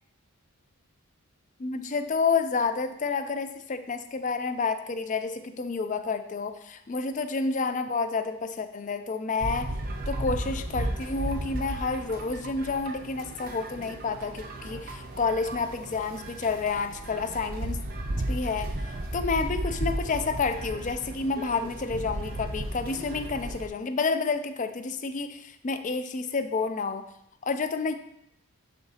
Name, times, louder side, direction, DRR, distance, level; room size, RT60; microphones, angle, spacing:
voice 1, 1.6-9.7 10.1-17.8 18.3-18.7 19.1-27.1 27.4-27.9, left 4 dB, 35° left, 10 dB, 0.4 m, -29 dB
sound 1, 9.4-23.7, right 1 dB, 40° right, 0.6 m, -34 dB
10.5 x 3.9 x 2.8 m, 0.75 s
head